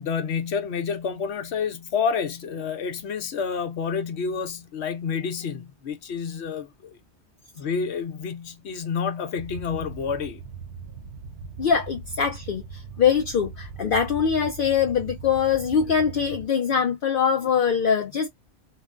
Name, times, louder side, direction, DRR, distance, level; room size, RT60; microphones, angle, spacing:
voice 1, 0.0-7.0 7.6-10.4, left 6 dB, 75° left, 1.0 m, -29 dB
sound 1, 9.4-16.5, right 5 dB, 75° right, 1.1 m, -40 dB
voice 2, 11.6-18.3, left 7 dB, 60° left, 0.7 m, -23 dB
3.7 x 2.2 x 2.3 m
omnidirectional pair, 1.1 m